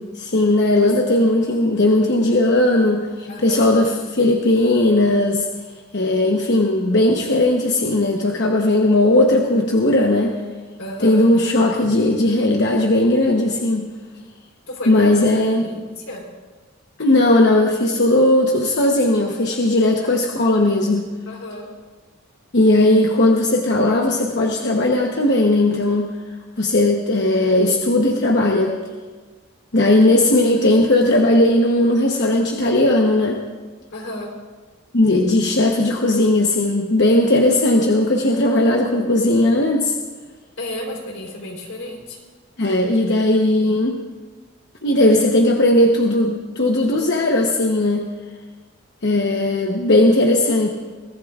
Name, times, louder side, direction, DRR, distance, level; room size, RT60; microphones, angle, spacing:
voice 1, 0.2-5.5 5.9-10.3 11.0-13.9 14.9-15.6 17.0-21.1 22.5-26.1 26.6-28.8 29.7-33.4 34.9-39.9 42.6-44.0 44.8-48.1 49.0-50.7, left 1 dB, 55° left, 0 dB, 1.0 m, -17 dB
voice 2, 3.3-3.7 10.8-11.3 14.7-15.3 15.6-16.2 19.5-20.2 21.3-21.7 29.8-30.0 30.6-30.7 33.9-34.3 40.6-42.2 43.1-43.3, left 1 dB, 85° left, 0 dB, 3.7 m, -33 dB
22.5 x 15.0 x 2.5 m, 1.4 s
head